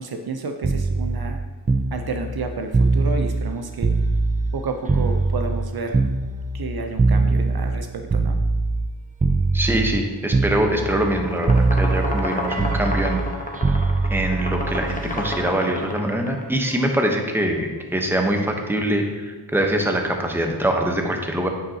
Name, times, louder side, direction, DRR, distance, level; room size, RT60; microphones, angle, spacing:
voice 1, 0.0-1.4 1.9-3.9 4.5-6.1 6.5-8.4, right 4 dB, 60° right, 5 dB, 0.6 m, -30 dB
sound 1, 0.6-4.6 4.9-8.9 9.2-10.0 10.3-11.2 11.5-15.5 16.7-16.9, right 3 dB, 20° right, 0.4 m, -22 dB
voice 2, 9.5-13.2 14.1-21.5, right 1 dB, 5° right, 2 dB, 0.9 m, -23 dB
sound 2, 10.7-16.5, left 1 dB, 20° left, 1.0 m, -30 dB
9.0 x 5.5 x 2.8 m, 1.3 s
wide cardioid pair, 65°, 42 cm